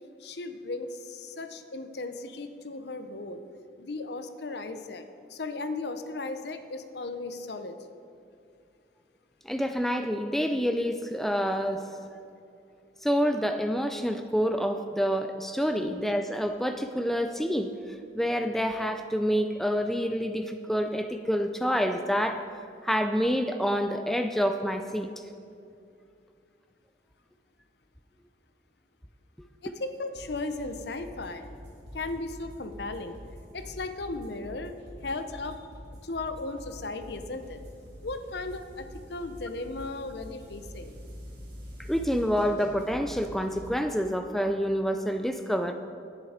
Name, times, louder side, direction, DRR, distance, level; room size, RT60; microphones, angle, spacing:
voice 1, 0.2-3.4 3.8-7.9 29.6-31.4 31.9-33.1 33.5-34.7 35.0-35.6 36.0-37.6 38.0-40.9, left 3 dB, 60° left, 9 dB, 0.7 m, -36 dB
voice 2, 9.5-12.0 13.0-22.4 22.8-25.1 41.9-45.7, equal, ahead, 6 dB, 0.3 m, -27 dB
sound 1, 30.1-43.7, equal, 65° right, 3.1 m, -45 dB
10.5 x 9.8 x 5.0 m, 2.5 s
head